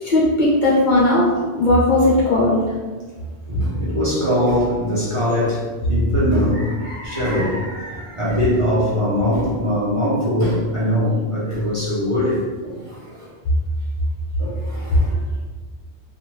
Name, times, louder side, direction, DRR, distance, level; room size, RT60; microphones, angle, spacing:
voice 1, 0.0-1.3 1.5-2.6, left 1 dB, 55° left, -6 dB, 0.6 m, -16 dB
voice 2, 3.5-13.3 14.4-15.1, equal, 35° right, -9 dB, 0.7 m, -22 dB
2.5 x 2.1 x 3.0 m, 1.4 s
omnidirectional pair, 1.1 m